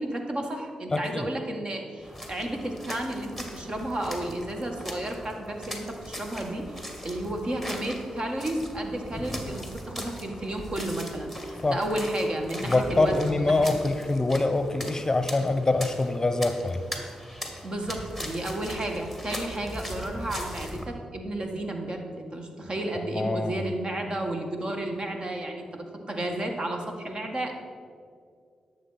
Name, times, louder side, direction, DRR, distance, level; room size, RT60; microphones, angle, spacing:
voice 1, 0.0-13.6 17.6-27.7, right 1 dB, 45° right, 3 dB, 1.9 m, -32 dB
voice 2, 0.9-1.3 11.6-11.8 12.6-16.8 23.1-23.7, left 2 dB, 25° left, 9 dB, 0.9 m, -25 dB
sound 1, 2.0-20.9, equal, 5° right, 2.3 m, -40 dB
11.0 x 7.1 x 5.9 m, 2.2 s
supercardioid pair, 45°, 2 cm